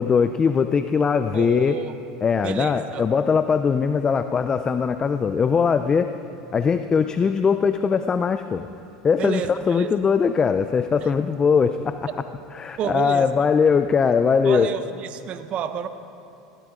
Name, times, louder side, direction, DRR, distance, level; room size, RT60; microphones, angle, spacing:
voice 1, 0.0-1.7 2.2-6.2 6.5-8.7 9.0-12.1 12.5-14.7, left 6 dB, 25° left, 10 dB, 0.6 m, -21 dB
voice 2, 1.3-1.9 2.4-3.0 9.2-9.9 12.8-13.3 14.4-15.9, right 8 dB, 45° right, 10 dB, 1.1 m, -30 dB
20.5 x 16.5 x 3.8 m, 2.8 s
hypercardioid pair, 90°, 3 cm